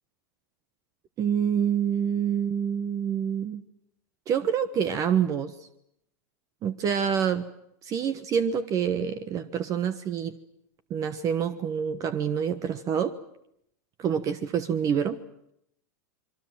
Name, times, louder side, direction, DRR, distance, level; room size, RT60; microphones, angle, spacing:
voice 1, 1.2-3.6 4.3-5.5 6.6-7.5 7.8-10.3 10.9-13.1 14.0-15.2, right 8 dB, 35° right, 11 dB, 1.3 m, -27 dB
27.0 x 23.0 x 7.7 m, 0.77 s
hypercardioid pair, 110°, 10 cm